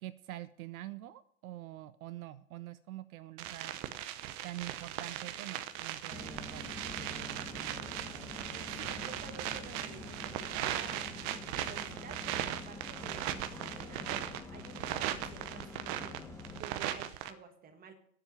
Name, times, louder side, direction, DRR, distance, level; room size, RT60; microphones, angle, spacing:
voice 1, 0.0-3.8 4.4-7.9, right 15 dB, 70° right, 14 dB, 0.8 m, -46 dB
sound 1, 3.4-17.3, right 12 dB, 35° right, 1.0 m, -39 dB
sound 2, 6.1-16.6, left 2 dB, 5° left, 1.3 m, -46 dB
voice 2, 8.5-16.1 16.6-17.9, right 6 dB, 20° right, 6 dB, 1.7 m, -51 dB
8.9 x 7.4 x 8.9 m, 0.64 s
hypercardioid pair, 130°, 45 cm